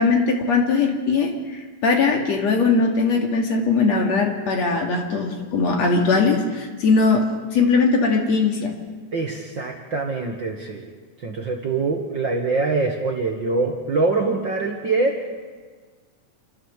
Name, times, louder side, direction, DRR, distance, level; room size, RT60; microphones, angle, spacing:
voice 1, 0.0-7.2 7.5-8.7, left 4 dB, 55° left, 2 dB, 3.4 m, -20 dB
voice 2, 9.1-10.9 11.2-15.2, right 3 dB, 45° right, 1 dB, 1.8 m, -24 dB
28.0 x 14.0 x 7.3 m, 1.5 s
omnidirectional pair, 3.7 m